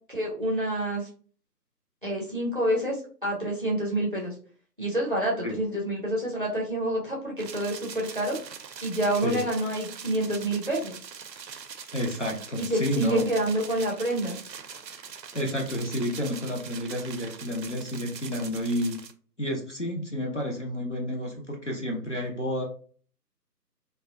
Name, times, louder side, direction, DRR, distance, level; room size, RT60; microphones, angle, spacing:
voice 1, 0.1-1.1 2.0-4.3 4.8-8.4 8.8-11.0 12.6-14.4, right 1 dB, 35° right, -3 dB, 0.5 m, -28 dB
sound 1, 7.4-19.1, right 6 dB, 85° right, 0.6 m, -42 dB
voice 2, 11.9-13.3 15.3-19.0 19.4-22.6, equal, 50° left, 1 dB, 0.5 m, -30 dB
2.6 x 2.1 x 2.3 m, 0.43 s
figure-of-eight pair, 160°, 49 cm